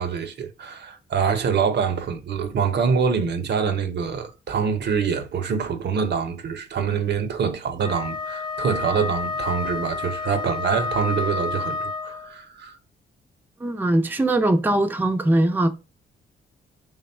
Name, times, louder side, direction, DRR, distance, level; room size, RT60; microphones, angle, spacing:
voice 1, 0.0-12.7, right 6 dB, 60° right, 0.6 m, -25 dB
Wind instrument woodwind instrument, 7.7-12.4, left 4 dB, 20° left, 0.8 m, -30 dB
voice 2, 13.6-15.7, right 1 dB, 10° right, 0.5 m, -21 dB
3.3 x 2.2 x 4.2 m
cardioid pair, 75°, 20 cm